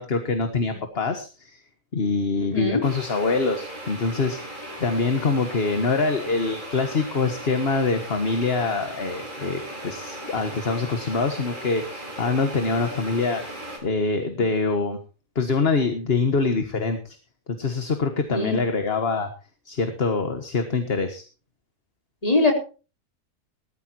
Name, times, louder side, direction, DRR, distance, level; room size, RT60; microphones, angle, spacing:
voice 1, 0.0-1.6 1.9-13.4 13.8-15.0 15.4-17.2 17.5-19.3 19.7-21.2, left 4 dB, 45° left, 7 dB, 1.7 m, -25 dB
voice 2, 2.4-2.8 14.4-14.5 18.3-18.6 22.2-22.5, left 2 dB, 25° left, 2 dB, 3.9 m, -22 dB
sound 1, 2.8-13.8, right 1 dB, 35° right, 6.1 m, -37 dB
19.0 x 13.5 x 3.0 m, 0.35 s
omnidirectional pair, 1.5 m